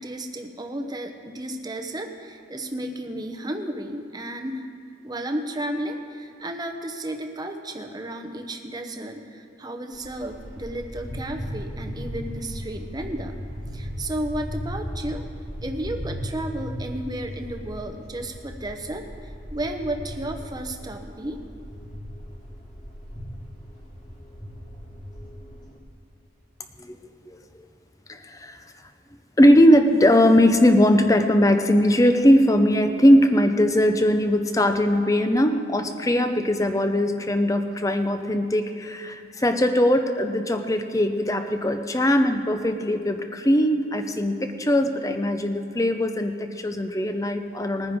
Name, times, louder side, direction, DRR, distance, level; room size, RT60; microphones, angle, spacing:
voice 1, 0.0-4.7 5.0-13.4 13.7-15.3 15.6-21.4, right 1 dB, 20° right, 4 dB, 0.7 m, -33 dB
sound 1, 9.9-25.8, equal, 35° left, 2.2 m, -37 dB
voice 2, 28.1-28.6 29.4-48.0, left 1 dB, 15° left, 7 dB, 0.6 m, -20 dB
20.5 x 9.9 x 3.6 m, 2.4 s
head